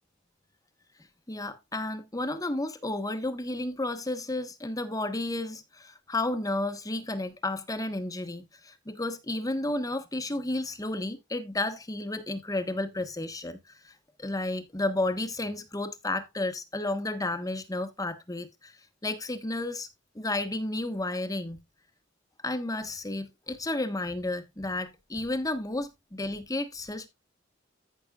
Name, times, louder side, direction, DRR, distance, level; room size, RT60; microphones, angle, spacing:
voice 1, 1.3-18.8 19.0-19.9 20.1-21.6 22.4-27.1, left 2 dB, 20° left, 1.2 m, -32 dB
15.0 x 6.0 x 2.3 m
head